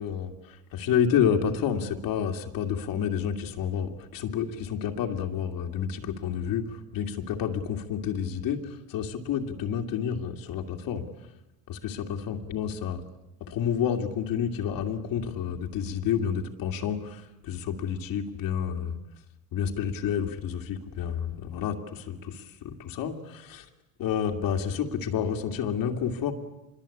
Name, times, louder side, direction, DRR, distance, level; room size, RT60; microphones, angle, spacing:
voice 1, 0.0-11.0 11.7-13.0 13.4-19.0 19.5-23.6 24.0-26.3, left 8 dB, 75° left, 3 dB, 2.4 m, -29 dB
26.0 x 22.0 x 8.5 m, 0.93 s
cardioid pair, 120°, 35 cm